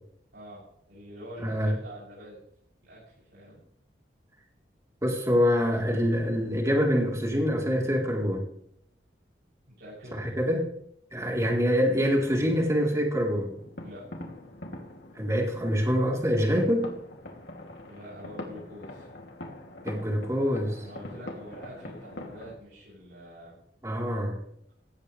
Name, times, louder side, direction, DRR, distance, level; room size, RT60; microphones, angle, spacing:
voice 1, 0.3-2.4 2.9-3.6 9.8-10.2 13.8-14.0 17.8-19.1 20.8-23.5, equal, 70° right, -8 dB, 7.9 m, -45 dB
voice 2, 1.4-1.7 5.0-8.4 10.1-10.7 11.1-13.5 15.2-16.9 19.8-20.8 23.8-24.4, equal, 15° right, -1 dB, 3.8 m, -25 dB
sound 1, 13.3-22.6, left 1 dB, 70° left, 2.8 m, -43 dB
18.0 x 15.5 x 3.4 m, 0.69 s
head